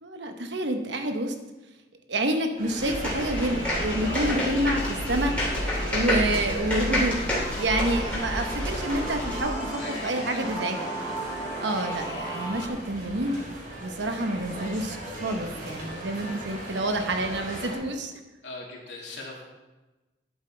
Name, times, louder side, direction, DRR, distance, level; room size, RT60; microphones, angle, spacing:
voice 1, 0.0-1.3 2.1-7.2 7.6-11.2 11.6-13.4 13.8-18.1, right 1 dB, 85° right, 6 dB, 1.0 m, -28 dB
sound 1, 2.6-17.8, right 1 dB, 55° right, 3.0 m, -38 dB
sound 2, 2.8-9.4, left 1 dB, 10° left, 2.9 m, -29 dB
sound 3, 3.1-12.7, equal, 25° left, 1.8 m, -37 dB
voice 2, 9.7-10.5 18.4-19.4, left 2 dB, 75° left, -3 dB, 2.6 m, -40 dB
11.0 x 8.1 x 3.4 m, 1.1 s
head